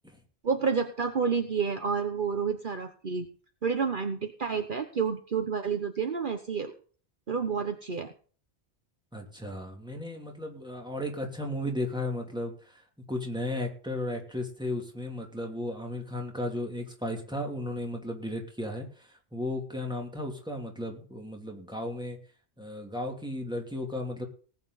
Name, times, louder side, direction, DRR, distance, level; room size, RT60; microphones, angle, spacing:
voice 1, 0.4-3.3 3.6-6.7 7.3-8.1, right 6 dB, 50° right, 7 dB, 1.2 m, -29 dB
voice 2, 9.1-12.8 13.1-22.2 22.6-24.3, left 1 dB, 5° right, 1 dB, 3.0 m, -35 dB
19.0 x 8.6 x 4.1 m, 0.42 s
omnidirectional pair, 1.1 m